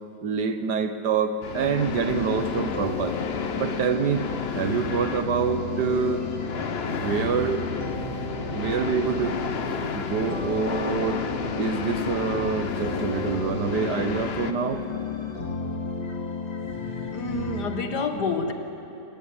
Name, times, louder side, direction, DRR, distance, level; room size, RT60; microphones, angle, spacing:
voice 1, 0.2-3.2 3.6-4.2 4.5-6.3 6.9-7.7 8.4-9.4 9.9-11.2 11.6-14.8, right 6 dB, 75° right, 9 dB, 1.6 m, -26 dB
sound 1, 1.4-14.5, left 5 dB, 45° left, 1.0 m, -32 dB
sound 2, 1.5-17.8, left 4 dB, 90° left, 3.2 m, -33 dB
voice 2, 16.7-18.5, left 3 dB, 70° left, 6 dB, 2.2 m, -29 dB
27.0 x 16.5 x 9.7 m, 2.9 s
omnidirectional pair, 1.8 m